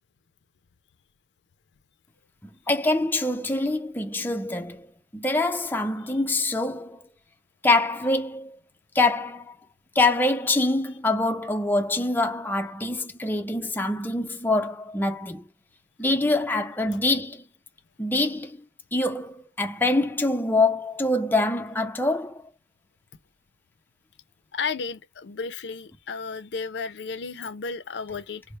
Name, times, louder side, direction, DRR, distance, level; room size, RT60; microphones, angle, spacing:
voice 1, 2.7-4.9 5.1-7.1 7.6-8.6 8.9-9.5 10.0-15.4 16.0-17.4 18.0-18.6 18.9-22.4, left 2 dB, 10° left, 0.5 m, -25 dB
voice 2, 24.5-28.4, left 5 dB, 80° left, 0.5 m, -33 dB
3.3 x 2.1 x 4.2 m
head